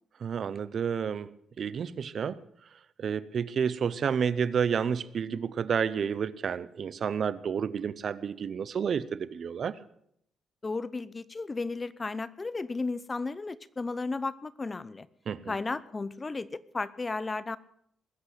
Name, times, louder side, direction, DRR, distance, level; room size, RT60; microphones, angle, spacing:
voice 1, 0.2-1.3 1.6-2.4 3.0-9.8 15.3-15.5, right 7 dB, 55° right, 18 dB, 0.7 m, -30 dB
voice 2, 10.6-15.1 15.5-17.6, left 3 dB, 25° left, 18 dB, 0.7 m, -34 dB
20.5 x 8.2 x 8.0 m, 0.71 s
cardioid pair, 90°, 0 cm